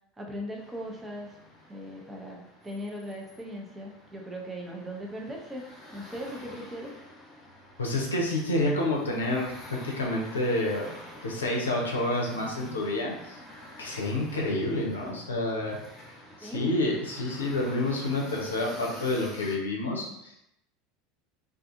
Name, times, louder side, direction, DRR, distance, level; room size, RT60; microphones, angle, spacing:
voice 1, 0.2-1.4 1.7-5.6 5.9-6.9 16.4-16.8, equal, 15° right, 0 dB, 0.6 m, -39 dB
sound 1, 0.6-19.6, left 1 dB, 25° left, 0.9 m, -48 dB
voice 2, 7.8-10.9 11.2-13.4 13.8-15.8 16.4-20.4, left 1 dB, 90° left, -2 dB, 0.6 m, -29 dB
2.5 x 2.5 x 2.5 m, 0.82 s
hypercardioid pair, 80°, 0 cm